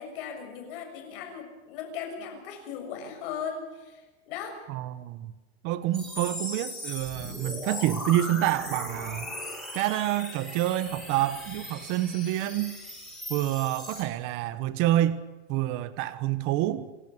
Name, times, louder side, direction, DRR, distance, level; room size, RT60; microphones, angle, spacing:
voice 1, 0.0-4.6, left 7 dB, 55° left, 6.7 m, -38 dB
voice 2, 4.7-5.3 5.6-9.3 9.7-12.8 13.3-15.2 15.5-16.9, right 14 dB, 35° right, 1.3 m, -27 dB
sound 1, 5.9-14.0, left 1 dB, ahead, 6.7 m, -38 dB
27.5 x 15.5 x 8.5 m
supercardioid pair, 165°, 33 cm